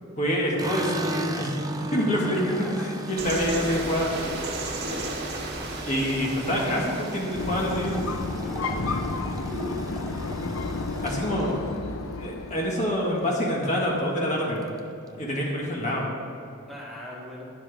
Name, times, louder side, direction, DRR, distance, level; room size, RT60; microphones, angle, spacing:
voice 1, 0.2-1.6 1.9-4.1 5.9-8.0 11.0-11.5 12.2-14.8 15.2-16.1, equal, 35° left, -3 dB, 1.8 m, -26 dB
sound 1, 0.6-12.8 13.2-13.8 14.1-14.2 14.4-15.2, right 1 dB, 15° right, 0.6 m, -37 dB
voice 2, 2.5-2.9 3.2-3.3 8.4-8.9 9.5-9.8 16.7-17.5, equal, ahead, -6 dB, 2.0 m, -39 dB
sound 2, 3.2-8.4, right 2 dB, 50° right, 1.6 m, -34 dB
sound 3, 7.4-12.9, left 3 dB, 85° left, 0.7 m, -31 dB
12.0 x 11.0 x 3.5 m, 2.6 s
head